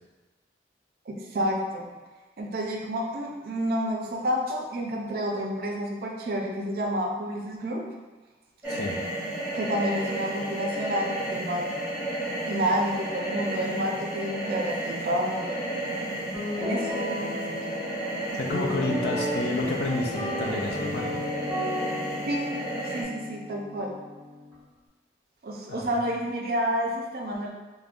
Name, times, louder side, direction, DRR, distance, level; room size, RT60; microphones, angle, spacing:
voice 1, 1.1-1.9 2.4-7.8 9.5-12.1 12.5-15.7 16.6-16.9 22.3-22.5 22.9-24.0 25.4-27.5, equal, 50° right, 1 dB, 0.4 m, -29 dB
sound 1, 8.6-23.0, right 1 dB, 10° right, 0.7 m, -32 dB
voice 2, 8.7-9.0 18.4-21.4 25.7-25.9, left 2 dB, 60° left, 1 dB, 0.4 m, -30 dB
Guitar, 16.3-24.5, left 1 dB, 5° left, 1.3 m, -34 dB
3.5 x 2.1 x 2.4 m, 1.3 s
head